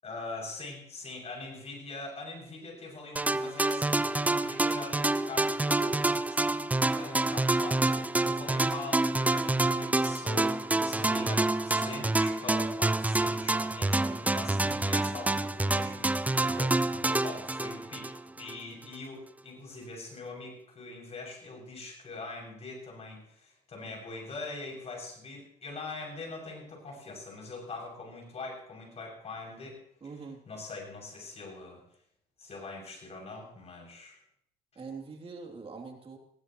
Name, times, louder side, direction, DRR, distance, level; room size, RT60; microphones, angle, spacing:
voice 1, 0.0-6.2 6.9-29.8 30.5-31.8 32.4-34.2, left 3 dB, 40° left, -1 dB, 7.6 m, -43 dB
sound 1, 3.2-18.6, right 2 dB, 10° right, 0.5 m, -28 dB
voice 2, 30.0-30.4 34.8-36.2, right 4 dB, 35° right, 2 dB, 3.3 m, -43 dB
21.5 x 16.0 x 3.2 m, 0.69 s
cardioid pair, 110°, 17 cm